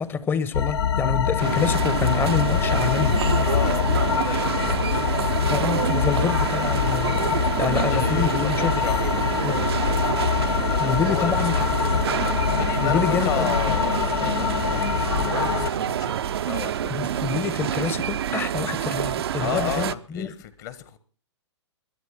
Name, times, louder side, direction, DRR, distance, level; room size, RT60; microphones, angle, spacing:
voice 1, 0.0-3.2 5.5-8.8 9.4-9.8 10.8-11.5 12.8-13.5 16.9-20.3, left 6 dB, 15° left, 1.0 m, -27 dB
sound 1, 0.5-15.7, left 7 dB, 60° left, 0.8 m, -24 dB
sound 2, 1.4-19.9, right 9 dB, 60° right, 0.7 m, -27 dB
voice 2, 3.4-5.1 7.5-9.4 10.5-12.0 12.5-16.9 19.4-21.0, left 12 dB, 40° left, 1.4 m, -34 dB
21.5 x 8.2 x 5.9 m
figure-of-eight pair, 125°, 15 cm